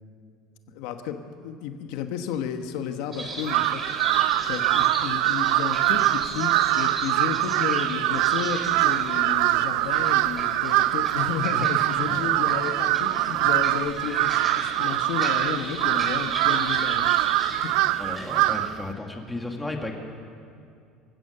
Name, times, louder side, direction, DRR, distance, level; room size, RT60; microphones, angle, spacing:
voice 1, 0.7-3.8 4.4-17.7, left 8 dB, 80° left, 7 dB, 1.3 m, -32 dB
sound 1, 3.1-18.6, right 1 dB, 15° right, 4.8 m, -37 dB
Crow, 3.4-18.8, right 17 dB, 75° right, 0.4 m, -23 dB
voice 2, 12.1-12.6 18.0-19.9, left 2 dB, 5° left, 2 dB, 2.1 m, -34 dB
24.5 x 15.5 x 6.8 m, 2.4 s
cardioid pair, 150°, 0 cm